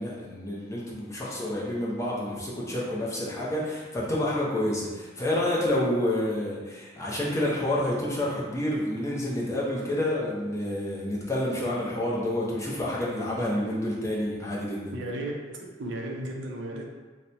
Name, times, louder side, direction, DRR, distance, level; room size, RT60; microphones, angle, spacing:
voice 1, 0.0-14.9, left 1 dB, 15° left, -5 dB, 0.7 m, -29 dB
voice 2, 14.9-16.9, right 1 dB, 70° right, 0 dB, 0.6 m, -35 dB
2.9 x 2.2 x 3.9 m, 1.3 s
head